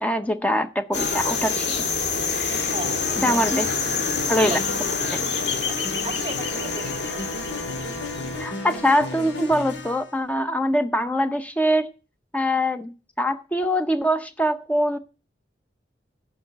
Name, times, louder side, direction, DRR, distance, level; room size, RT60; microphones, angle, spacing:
voice 1, 0.0-1.8 3.2-3.7 4.3-4.6 8.4-11.9 12.3-15.0, equal, 10° left, 0.5 m, -23 dB
sound 1, 0.9-8.5, left 4 dB, 70° left, 2.0 m, -27 dB
sound 2, 2.5-10.1, left 3 dB, 90° left, 2.1 m, -35 dB
voice 2, 2.7-3.4 4.4-4.6 5.3-5.4 5.6-5.8 6.0-6.9, right 4 dB, 30° right, 0.7 m, -35 dB
Wind instrument woodwind instrument, 6.3-9.8, equal, 30° left, 4.7 m, -38 dB
11.5 x 4.6 x 8.4 m
head